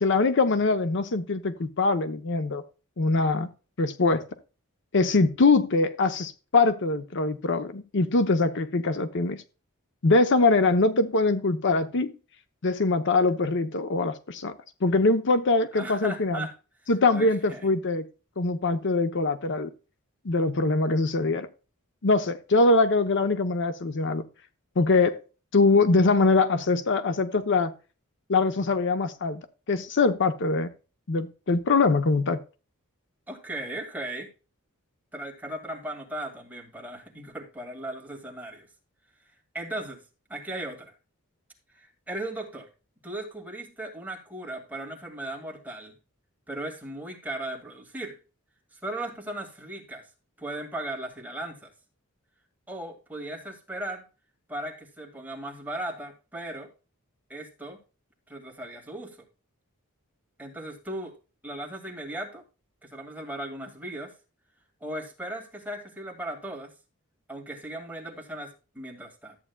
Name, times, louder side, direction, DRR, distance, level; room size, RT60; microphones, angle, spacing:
voice 1, 0.0-2.6 3.0-3.5 3.8-4.2 4.9-9.4 10.0-12.1 12.6-14.5 14.8-16.5 16.9-18.0 18.4-19.7 20.2-21.5 22.0-24.2 24.8-25.2 25.5-27.7 28.3-29.4 29.7-30.7 31.1-32.4, left 3 dB, 60° left, 0.8 m, -23 dB
voice 2, 15.7-16.5 17.1-17.7 33.3-34.3 35.1-38.7 39.5-40.0 40.3-40.9 41.7-42.7 43.0-45.9 46.5-48.2 48.7-50.1 50.4-51.7 52.7-54.0 54.5-56.7 57.3-57.8 58.3-59.2 60.4-61.1 61.4-62.4 62.8-64.1 64.8-66.7 67.3-69.4, right 1 dB, 10° right, 2.1 m, -37 dB
13.5 x 8.6 x 2.3 m
head